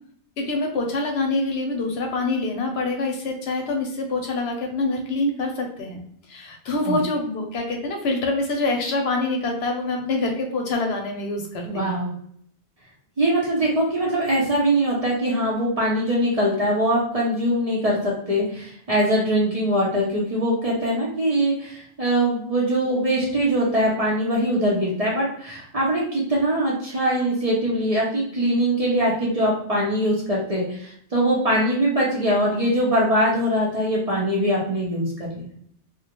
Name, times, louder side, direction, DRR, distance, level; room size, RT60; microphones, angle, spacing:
voice 1, 0.4-6.0 6.3-11.9, left 2 dB, 70° left, 2 dB, 0.8 m, -25 dB
voice 2, 11.6-12.1 13.2-35.5, right 1 dB, 40° right, -4 dB, 0.6 m, -22 dB
2.4 x 2.1 x 2.8 m, 0.66 s
omnidirectional pair, 1.2 m